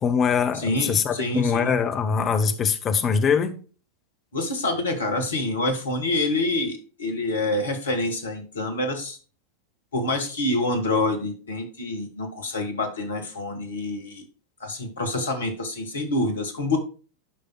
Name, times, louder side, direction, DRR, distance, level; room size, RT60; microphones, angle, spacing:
voice 1, 0.0-3.6, left 6 dB, 25° left, 1.0 m, -23 dB
voice 2, 0.5-1.8 4.3-9.2 9.9-14.3 14.6-16.8, left 2 dB, 65° left, 1.7 m, -27 dB
12.5 x 5.3 x 2.3 m
figure-of-eight pair, 90°, 0 cm